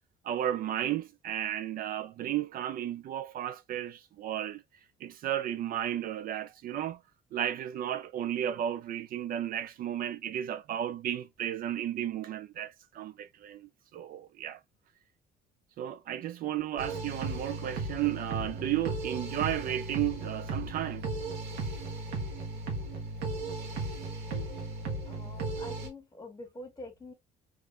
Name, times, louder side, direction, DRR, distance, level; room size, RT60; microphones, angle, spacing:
voice 1, 0.2-4.6 5.0-7.0 7.3-14.6 15.8-21.1, right 11 dB, 60° right, 0.4 m, -33 dB
sound 1, 16.8-25.9, right 2 dB, 80° right, 1.3 m, -36 dB
voice 2, 25.1-27.1, left 2 dB, 20° left, 1.8 m, -46 dB
3.6 x 3.2 x 2.4 m
cardioid pair, 110°, 17 cm